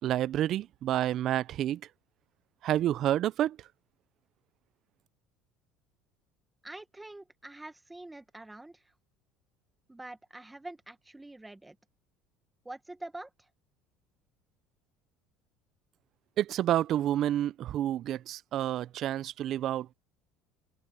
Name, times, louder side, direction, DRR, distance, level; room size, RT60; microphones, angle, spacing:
voice 1, 0.0-1.8 2.6-3.6 16.4-19.9, right 12 dB, 55° right, 0.5 m, -29 dB
voice 2, 6.6-8.9 9.9-11.8 12.6-13.5, right 2 dB, 10° right, 1.3 m, -45 dB
open air
supercardioid pair, 90°, 0 cm